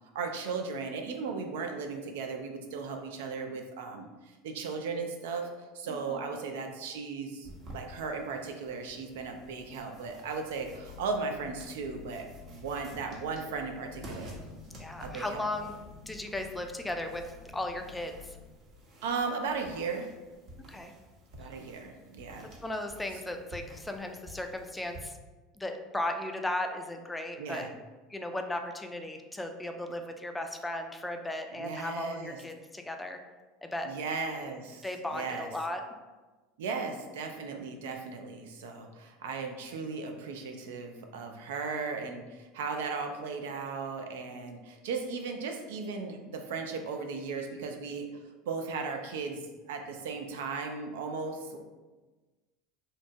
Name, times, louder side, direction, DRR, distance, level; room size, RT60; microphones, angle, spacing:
voice 1, 0.1-14.4 15.0-15.5 19.0-20.1 21.3-22.5 27.4-27.7 31.6-32.4 33.8-35.5 36.6-48.1 48.5-49.4 49.7-51.6, right 4 dB, 80° right, 4 dB, 0.3 m, -36 dB
voice 2, 5.9-6.3 14.8-15.7 16.1-17.3 17.5-18.4 20.7-20.9 22.6-25.2 25.6-27.7 28.1-33.2 33.6-33.9 34.8-35.8, left 1 dB, 10° left, 5 dB, 0.3 m, -36 dB
sound 1, 7.4-25.0, equal, 45° right, 0.7 m, -52 dB
sound 2, 10.6-18.5, left 6 dB, 80° left, 0.4 m, -51 dB
2.9 x 2.1 x 2.6 m, 1.2 s
hypercardioid pair, 90°, 0 cm